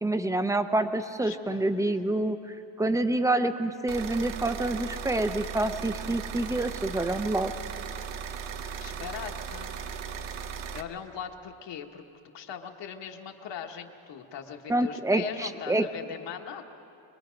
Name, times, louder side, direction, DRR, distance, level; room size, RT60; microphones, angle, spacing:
voice 1, 0.0-7.5 14.7-15.8, right 2 dB, 5° right, 9 dB, 0.5 m, -27 dB
voice 2, 1.2-1.8 8.8-9.7 10.7-12.0 12.3-16.6, left 8 dB, 60° left, 3 dB, 1.4 m, -40 dB
sound 1, 3.9-10.8, right 7 dB, 60° right, 1.0 m, -37 dB
24.0 x 21.5 x 5.2 m, 3.0 s
cardioid pair, 170°, 48 cm